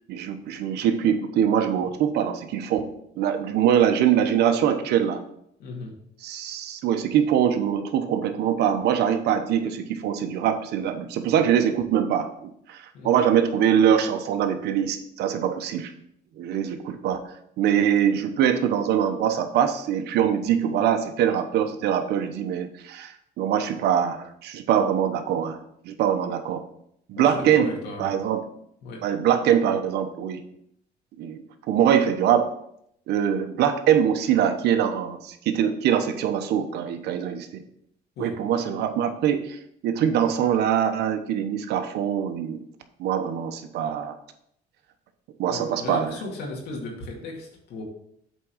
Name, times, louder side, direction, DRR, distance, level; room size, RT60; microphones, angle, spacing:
voice 1, 0.1-2.9 3.2-5.2 6.2-15.9 16.4-17.3 17.6-25.6 25.8-26.6 27.1-27.7 28.0-28.4 29.0-30.4 31.2-32.5 33.1-37.6 38.2-42.6 43.0-44.1 45.4-46.2, right 9 dB, 75° right, 7 dB, 1.0 m, -23 dB
voice 2, 5.6-5.9 12.9-13.2 27.2-28.0 28.8-29.0 38.2-38.3 45.5-47.8, left 2 dB, 75° left, -1 dB, 2.4 m, -35 dB
8.1 x 3.7 x 6.2 m, 0.71 s
cardioid pair, 110°, 17 cm